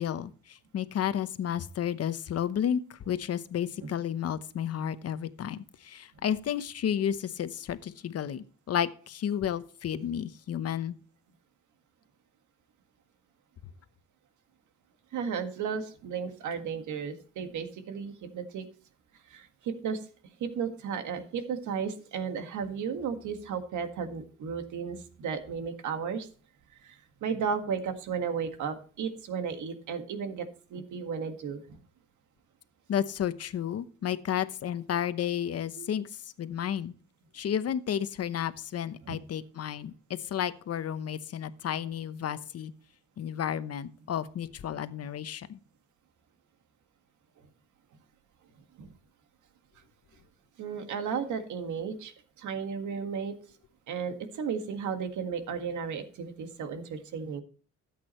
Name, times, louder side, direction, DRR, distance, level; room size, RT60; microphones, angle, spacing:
voice 1, 0.0-11.0 32.9-36.1 36.4-36.9 37.3-42.7 43.2-45.6, left 9 dB, 55° left, 13 dB, 0.9 m, -32 dB
voice 2, 15.1-18.6 19.3-20.0 20.4-26.3 26.8-31.8 35.8-35.9 39.0-39.1 48.8-48.9 50.6-53.3 53.9-57.4, right 6 dB, 75° right, 7 dB, 1.8 m, -34 dB
13.0 x 8.5 x 3.1 m, 0.40 s
cardioid pair, 90°, 30 cm